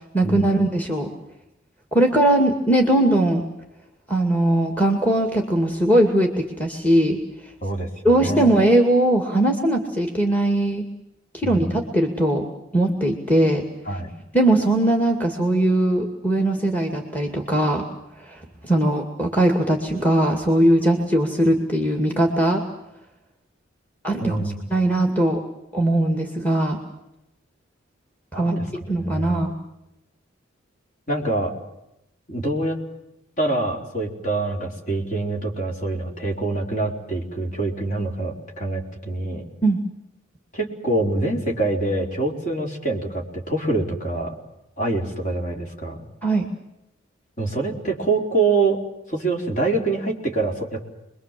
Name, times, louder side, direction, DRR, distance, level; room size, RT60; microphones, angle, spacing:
voice 1, 0.1-1.1 1.9-3.4 4.1-7.2 8.0-10.8 11.3-12.5 12.7-13.6 14.3-17.9 18.3-22.6 24.0-24.4 24.7-25.4 25.7-26.8 28.3-28.5 28.9-29.5 39.6-39.8 46.2-46.5, right 1 dB, 5° left, 3 dB, 2.3 m, -20 dB
voice 2, 7.6-8.5 11.4-11.8 13.9-14.1 24.2-24.5 28.3-28.7 29.0-29.4 31.1-31.5 32.3-32.8 33.4-39.4 40.5-44.4 44.8-46.0 47.4-48.8 49.1-50.8, right 2 dB, 35° left, 1 dB, 4.6 m, -25 dB
28.0 x 22.5 x 7.7 m, 0.88 s
head